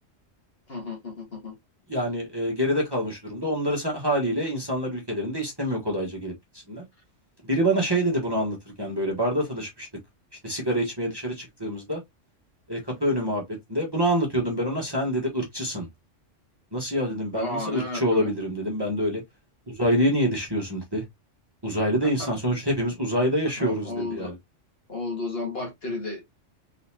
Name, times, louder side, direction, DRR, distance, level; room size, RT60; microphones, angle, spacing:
voice 1, 0.7-1.5 17.3-18.3 22.0-22.3 23.6-24.3 24.9-26.3, left 2 dB, 50° left, 2.0 m, -33 dB
voice 2, 1.9-6.8 7.4-9.9 10.4-12.0 12.7-13.4 13.7-15.9 16.7-19.2 19.7-21.0 21.6-24.3, equal, 20° right, 1.4 m, -26 dB
4.1 x 4.0 x 2.8 m
omnidirectional pair, 1.3 m